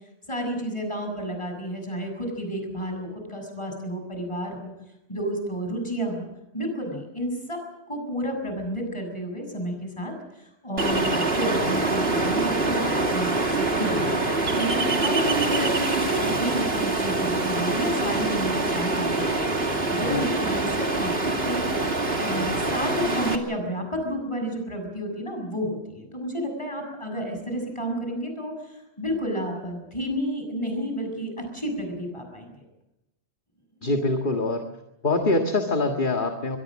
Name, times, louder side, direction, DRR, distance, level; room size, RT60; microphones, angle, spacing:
voice 1, 0.3-4.7 5.1-6.3 6.5-7.6 7.9-14.0 14.5-21.8 22.2-32.5 33.8-33.9, equal, 25° left, 4 dB, 6.9 m, -31 dB
Ocean, 10.8-23.4, right 2 dB, 65° right, 2.7 m, -25 dB
voice 2, 33.8-34.6 35.0-36.6, left 2 dB, 50° left, 4 dB, 2.0 m, -24 dB
24.0 x 22.5 x 6.3 m, 0.91 s
omnidirectional pair, 1.1 m